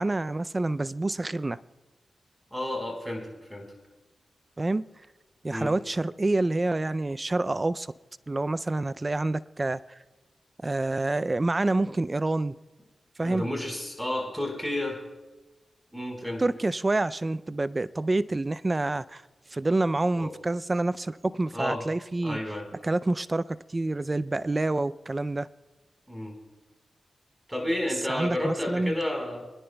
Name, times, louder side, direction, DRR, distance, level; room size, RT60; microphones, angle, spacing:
voice 1, 0.0-1.6 4.6-4.8 5.4-7.9 8.3-10.0 10.6-12.6 13.2-13.5 16.4-19.2 19.5-22.4 22.8-23.4 23.7-25.5 28.1-29.0, right 2 dB, 30° right, 16 dB, 0.4 m, -27 dB
voice 2, 2.5-3.2 3.5-3.6 5.5-5.7 13.2-15.0 15.9-16.4 20.2-20.3 21.5-21.8 22.2-22.6 26.1-26.3 27.5-29.4, left 1 dB, ahead, 0 dB, 4.4 m, -31 dB
26.0 x 10.5 x 2.3 m, 1.1 s
cardioid pair, 50°, 0 cm